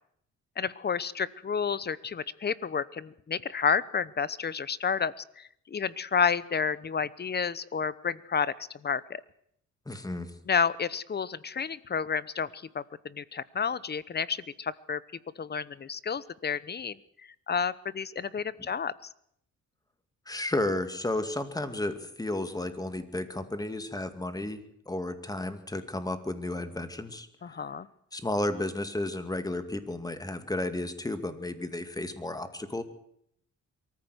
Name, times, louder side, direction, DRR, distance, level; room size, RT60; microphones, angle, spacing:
voice 1, 0.6-8.5 8.8-9.2 10.5-15.0 15.4-17.0 17.5-19.1 27.4-27.9, left 6 dB, 35° left, 19 dB, 0.9 m, -30 dB
voice 2, 9.9-10.3 20.3-27.3 28.1-32.8, left 1 dB, 10° left, 9 dB, 2.3 m, -33 dB
23.0 x 14.5 x 8.1 m, 0.70 s
cardioid pair, 90°, 30 cm